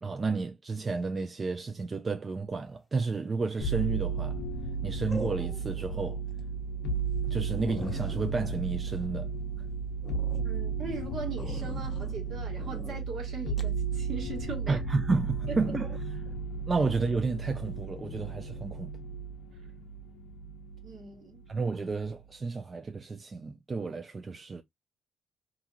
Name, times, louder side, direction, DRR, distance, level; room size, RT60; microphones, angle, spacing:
voice 1, 0.0-4.4 4.8-6.2 7.3-9.3 14.7-15.9 16.7-18.9 21.5-24.6, right 4 dB, 35° right, 0.3 m, -31 dB
sound 1, 3.5-3.9 5.1-5.9 6.3-6.4 6.9-7.0 7.2-7.3 7.6-9.6 10.0-10.5 11.4-12.2 12.6-13.0 13.6-13.8, left 1 dB, 15° left, 0.8 m, -44 dB
sound 2, 3.6-21.0 21.4-22.1, right 5 dB, 85° left, 0.5 m, -34 dB
voice 2, 10.4-14.8 15.5-15.7 20.8-21.4, right 4 dB, 60° right, 1.3 m, -40 dB
2.9 x 2.5 x 2.4 m
cardioid pair, 90°, 0 cm